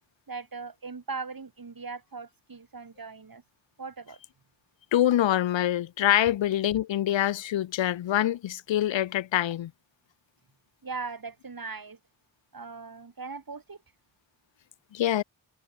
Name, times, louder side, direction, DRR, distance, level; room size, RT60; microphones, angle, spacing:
voice 1, 0.3-3.4 3.8-4.2 10.8-12.0 12.5-13.8, right 4 dB, 50° right, 7.9 m, -39 dB
voice 2, 4.9-9.7 14.9-15.2, left 12 dB, 90° left, 1.0 m, -25 dB
cardioid pair, 50°, 44 cm